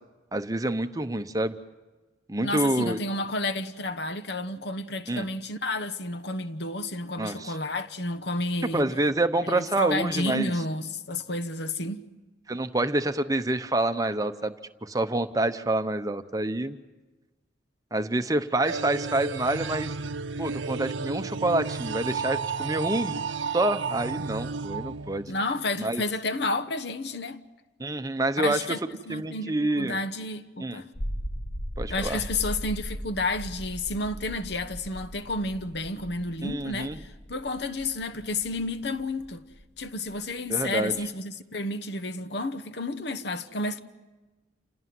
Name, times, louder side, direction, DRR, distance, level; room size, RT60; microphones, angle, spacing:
voice 1, 0.3-1.6 2.3-3.0 5.1-5.3 7.2-7.6 8.7-10.5 12.5-14.5 14.8-16.8 17.9-19.9 20.4-23.2 23.5-25.3 25.8-26.0 27.8-28.8 29.1-30.0 30.6-30.8 31.8-32.2 36.4-37.0 40.5-40.9, right 2 dB, 20° right, 0.8 m, -27 dB
voice 2, 2.4-8.8 9.4-12.1 25.3-27.4 28.4-28.8 29.1-30.9 31.9-39.4 39.8-43.8, left 2 dB, 60° left, 1.1 m, -31 dB
sound 1, 18.6-25.6, right 5 dB, 80° right, 0.7 m, -33 dB
sound 2, 30.9-41.1, equal, 35° left, 1.1 m, -38 dB
28.5 x 17.5 x 9.5 m
head